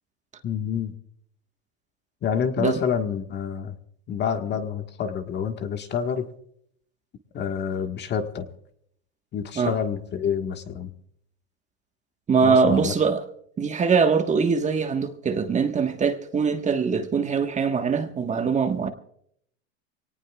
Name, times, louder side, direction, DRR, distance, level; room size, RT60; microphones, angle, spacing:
voice 1, 0.4-0.9 2.2-3.8 4.1-6.3 7.3-8.5 9.3-10.9 12.4-12.9, left 7 dB, 30° left, 1.5 m, -28 dB
voice 2, 12.3-13.2 13.6-18.9, right 5 dB, 20° right, 1.4 m, -22 dB
24.5 x 18.5 x 2.4 m
hypercardioid pair, 115°, 33 cm